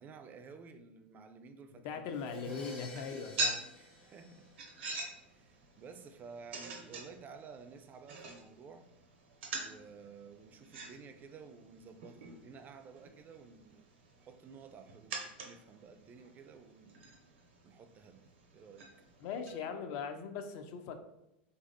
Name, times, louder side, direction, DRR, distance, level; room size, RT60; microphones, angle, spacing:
voice 1, 0.0-2.2 2.5-2.7 3.8-4.5 5.2-8.9 9.6-13.9 14.2-17.0 17.6-18.3 18.5-18.9, right 5 dB, 30° right, 8 dB, 0.3 m, -53 dB
voice 2, 1.8-3.6 19.2-21.0, left 6 dB, 55° left, 7 dB, 0.4 m, -40 dB
Crash cymbal, 2.1-5.0, equal, 90° left, 0.8 m, -50 dB
sound 1, 2.8-19.5, right 3 dB, 80° right, 0.6 m, -45 dB
3.1 x 2.6 x 2.5 m, 0.86 s
hypercardioid pair, 95°, 6 cm